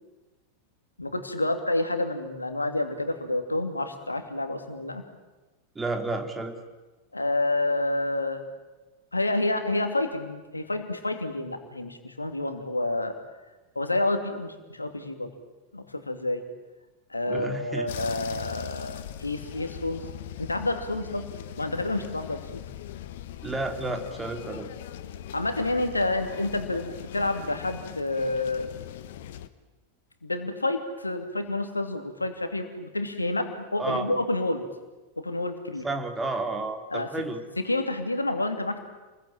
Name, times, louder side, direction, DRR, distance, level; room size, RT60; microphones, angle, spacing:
voice 1, 1.0-5.0 7.1-8.4 9.1-13.2 13.7-15.3 15.7-16.4 17.1-20.1 20.4-21.3 21.6-22.6 25.3-28.7 30.2-34.7 35.2-35.9 36.9-37.1 37.6-38.8, left 2 dB, 80° left, 7 dB, 2.7 m, -29 dB
voice 2, 5.7-6.6 17.3-17.9 23.4-24.7 33.8-34.0 35.8-37.4, right 2 dB, 10° right, 5 dB, 3.1 m, -31 dB
sound 1, 17.9-29.5, left 11 dB, 55° left, 1.4 m, -40 dB
28.5 x 22.0 x 9.0 m, 1.1 s
figure-of-eight pair, 90°, 0 cm